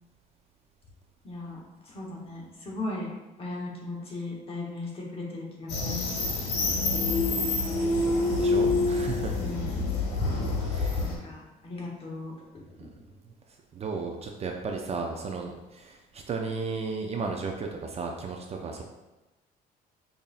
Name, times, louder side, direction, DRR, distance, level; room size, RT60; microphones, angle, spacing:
voice 1, 1.2-3.1 3.4-6.2 9.4-9.9 10.5-10.6 11.0-12.9, left 2 dB, 35° left, -3 dB, 1.1 m, -38 dB
sound 1, 5.7-11.2, left 3 dB, 75° left, 1.1 m, -27 dB
voice 2, 6.6-7.1 8.3-9.4 10.7-11.2 12.8-12.9 13.7-18.8, right 4 dB, 40° right, 2 dB, 0.5 m, -35 dB
5.4 x 2.6 x 2.4 m, 1.0 s
cardioid pair, 110°, 17 cm